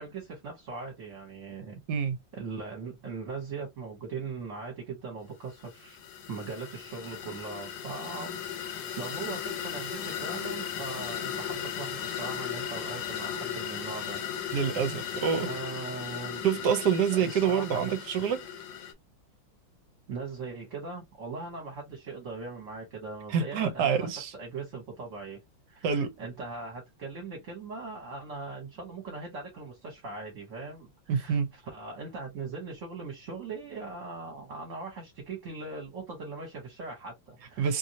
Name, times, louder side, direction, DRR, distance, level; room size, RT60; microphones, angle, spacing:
voice 1, 0.0-1.7 2.3-6.0 6.3-8.4 9.0-14.2 15.4-16.6 17.1-18.1 20.1-24.1 24.3-25.4 25.7-37.7, right 4 dB, 45° right, 1.3 m, -40 dB
sound 1, 5.6-18.9, left 9 dB, 75° left, 1.4 m, -37 dB
voice 2, 14.5-15.5 16.4-18.4 23.3-24.3 25.8-26.1 31.1-31.5 37.6-37.8, right 7 dB, 70° right, 1.2 m, -27 dB
3.0 x 2.6 x 2.7 m
omnidirectional pair, 2.1 m